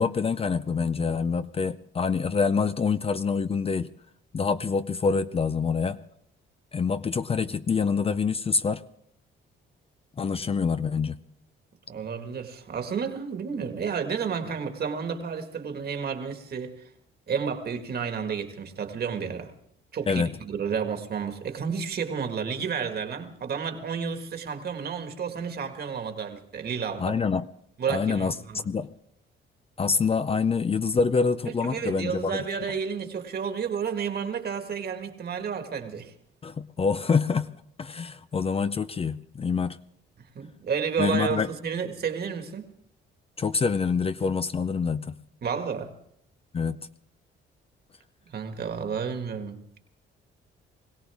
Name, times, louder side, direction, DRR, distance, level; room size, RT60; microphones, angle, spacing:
voice 1, 0.0-3.9 4.3-6.0 6.7-8.8 10.2-11.2 20.1-20.3 27.0-27.5 27.9-28.3 28.6-28.9 29.8-32.4 36.4-37.5 37.8-39.8 41.0-41.5 43.4-45.2 46.5-46.9, left 5 dB, 30° left, 0.5 m, -26 dB
voice 2, 11.9-16.9 17.3-19.5 19.9-27.2 27.8-28.7 31.5-36.1 40.4-42.7 45.4-45.9 48.3-49.6, right 6 dB, 55° right, 1.8 m, -31 dB
21.5 x 16.5 x 3.6 m
cardioid pair, 90°, 20 cm